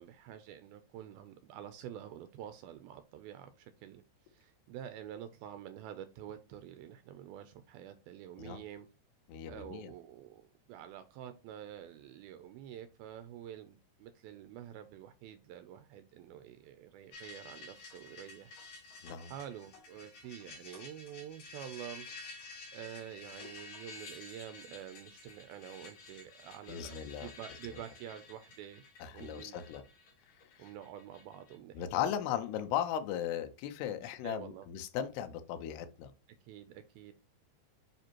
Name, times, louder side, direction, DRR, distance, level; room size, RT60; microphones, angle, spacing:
voice 1, 0.0-8.9 9.5-19.0 19.3-29.6 30.6-32.1 33.9-34.7 36.4-37.1, right 10 dB, 80° right, 2.3 m, -48 dB
voice 2, 9.3-9.9 19.0-19.3 26.7-27.3 29.0-29.8 30.6-30.7 31.8-36.1, left 10 dB, 85° left, 2.8 m, -37 dB
sound 1, 17.1-31.6, left 3 dB, 65° left, 4.6 m, -51 dB
9.2 x 4.3 x 2.9 m
omnidirectional pair, 4.7 m